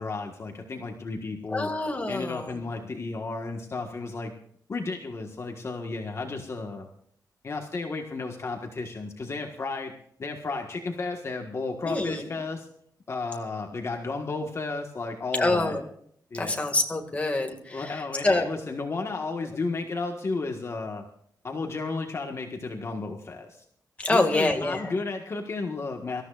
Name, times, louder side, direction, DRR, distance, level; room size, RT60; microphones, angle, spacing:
voice 1, 0.0-1.7 2.1-4.3 4.7-6.9 7.4-9.9 10.2-12.7 13.1-15.8 16.3-16.7 17.7-21.0 21.4-23.6 24.1-26.2, left 3 dB, 40° left, 2 dB, 1.5 m, -33 dB
voice 2, 1.5-2.6 11.8-12.2 15.3-15.8 16.3-18.4 24.0-24.8, left 2 dB, 20° left, 2 dB, 2.1 m, -26 dB
25.0 x 14.0 x 2.5 m, 0.65 s
wide cardioid pair, 150°, 7 cm